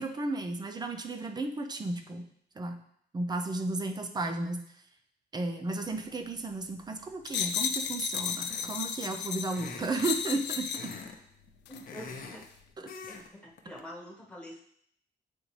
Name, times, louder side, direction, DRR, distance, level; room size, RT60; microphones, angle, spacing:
voice 1, 0.0-2.3 2.6-2.8 3.1-4.6 5.3-10.9, right 2 dB, 25° right, 5 dB, 0.5 m, -33 dB
sound 1, 7.3-11.0 11.7-11.8, left 7 dB, 85° left, 0.5 m, -34 dB
sound 2, 8.5-8.9 9.5-10.1 10.7-11.2 11.5-12.5 12.9-13.3 13.6-13.8, left 4 dB, 55° left, 0.8 m, -44 dB
voice 2, 11.7-12.5 13.1-14.6, equal, 5° left, -4 dB, 1.2 m, -46 dB
8.6 x 3.8 x 3.2 m, 0.67 s
wide cardioid pair, 165°, 18 cm